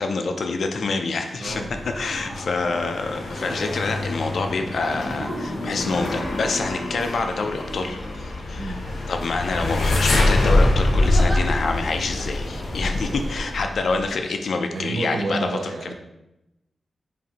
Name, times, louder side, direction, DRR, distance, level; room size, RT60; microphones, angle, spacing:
voice 1, 0.0-1.6 1.9-8.8 9.1-15.9, left 3 dB, 60° left, 5 dB, 0.3 m, -27 dB
sound 1, 1.2-1.4 1.8-2.5 3.3-3.9 4.8-6.9 7.7-8.4 8.8-9.0 9.5-10.1 11.0-11.4 12.2-12.3, equal, 10° right, 0.6 m, -37 dB
sound 2, 1.4-14.2, left 2 dB, 80° left, 0.7 m, -25 dB
voice 2, 1.4-1.7 8.6-8.8 13.1-13.2 14.7-15.9, right 3 dB, 70° right, 3 dB, 0.4 m, -30 dB
sound 3, 8.4-13.6, left 1 dB, 35° left, 1.2 m, -43 dB
4.8 x 2.6 x 2.8 m, 0.89 s
wide cardioid pair, 160°, 0 cm